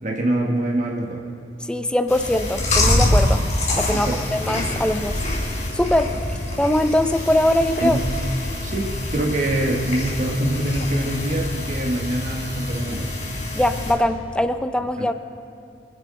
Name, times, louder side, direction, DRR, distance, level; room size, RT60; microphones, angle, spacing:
voice 1, 0.0-1.2 3.9-4.2 7.8-8.1 8.6-13.1 15.0-15.1, right 1 dB, 45° right, 0 dB, 1.2 m, -24 dB
voice 2, 1.6-3.4 3.8-5.2 5.7-6.2 6.6-8.0 13.5-15.1, left 1 dB, 5° left, 9 dB, 0.5 m, -21 dB
Chewing mastication, 2.1-13.9, left 1 dB, 45° left, 3.7 m, -25 dB
24.0 x 10.5 x 3.7 m, 2.5 s
head